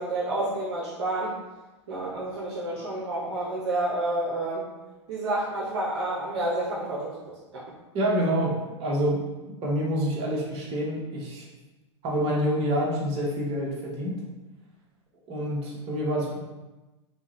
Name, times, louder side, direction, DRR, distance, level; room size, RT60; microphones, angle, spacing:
voice 1, 0.0-1.3 1.9-4.7 5.1-7.6, right 2 dB, 65° right, -6 dB, 1.1 m, -29 dB
voice 2, 7.9-9.2 9.5-11.5 12.0-14.2 15.3-16.4, equal, 40° right, -4 dB, 1.4 m, -27 dB
5.0 x 2.4 x 3.2 m, 1.1 s
hypercardioid pair, 105°, 15 cm